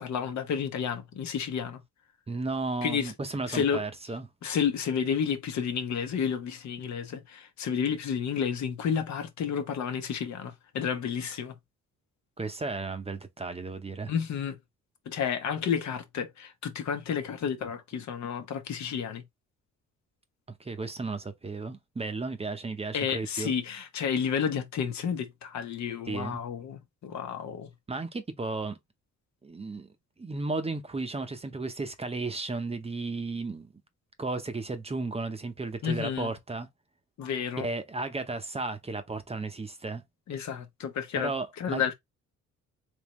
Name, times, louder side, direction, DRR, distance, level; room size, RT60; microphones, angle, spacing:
voice 1, 0.0-1.8 2.8-3.1 3.5-3.8 4.4-11.6 14.1-14.6 15.1-19.2 22.9-27.7 35.8-36.3 37.2-37.7 40.3-41.3 41.6-41.9, left 7 dB, 65° left, 0.9 m, -31 dB
voice 2, 2.3-4.3 12.4-14.1 20.6-23.5 26.1-26.4 27.9-28.8 29.4-29.9 30.2-33.7 34.2-36.7 37.6-40.0 41.1-41.8, right 3 dB, 20° right, 0.7 m, -34 dB
3.6 x 3.2 x 3.0 m
cardioid pair, 90°, 30 cm